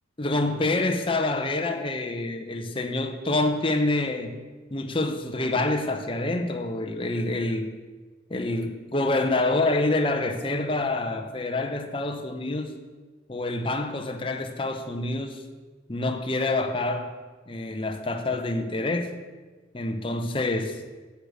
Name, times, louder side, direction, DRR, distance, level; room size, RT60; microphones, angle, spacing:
voice 1, 0.2-4.4 4.7-7.7 8.3-12.8 13.3-15.4 15.9-17.1 17.5-19.1 19.7-20.8, left 2 dB, 30° left, 5 dB, 0.9 m, -27 dB
10.0 x 8.2 x 6.3 m, 1.3 s
head